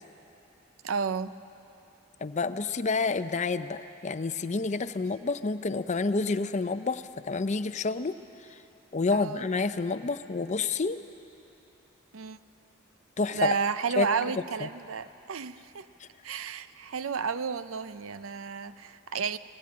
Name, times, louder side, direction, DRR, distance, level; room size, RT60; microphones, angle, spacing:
voice 1, 0.8-1.3 9.1-9.4 12.1-12.4 13.3-15.9 16.2-19.4, right 5 dB, 80° right, 14 dB, 0.6 m, -32 dB
voice 2, 2.2-8.2 8.9-11.0 13.2-13.5 14.0-14.1 14.6-14.7, left 4 dB, 35° left, 12 dB, 0.5 m, -29 dB
19.0 x 17.0 x 8.6 m, 2.9 s
head